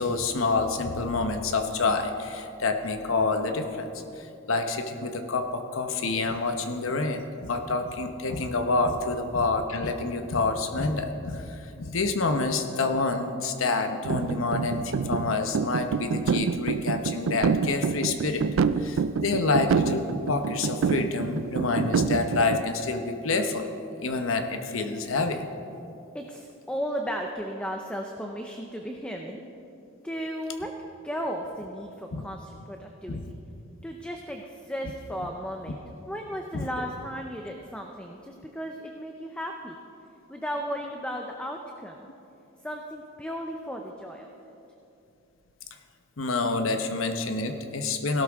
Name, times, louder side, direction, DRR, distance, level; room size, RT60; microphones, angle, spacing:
voice 1, 0.0-18.4 18.8-23.7 24.0-25.4 32.1-32.3 33.1-33.3 36.5-36.7 46.2-48.2, left 3 dB, 80° left, 6 dB, 1.0 m, -28 dB
sound 1, 14.0-22.6, right 5 dB, 75° right, 0.4 m, -27 dB
voice 2, 26.1-29.4 30.0-30.7 31.0-33.2 33.8-39.8 40.3-42.0 42.6-44.3, equal, 5° left, 2 dB, 0.6 m, -35 dB
17.0 x 12.5 x 3.6 m, 2.8 s
head